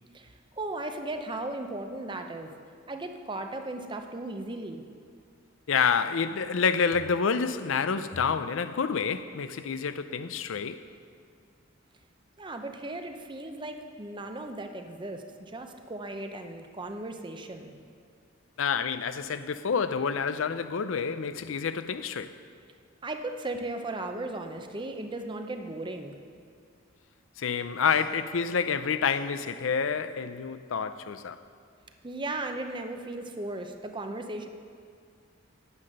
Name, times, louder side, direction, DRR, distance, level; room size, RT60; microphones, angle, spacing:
voice 1, 0.1-2.5 2.9-4.8 12.4-17.7 23.0-26.1 32.0-34.5, right 2 dB, 25° right, 0.7 m, -36 dB
voice 2, 5.7-10.8 18.6-22.4 27.4-31.4, left 6 dB, 80° left, 0.5 m, -28 dB
9.7 x 9.3 x 6.5 m
head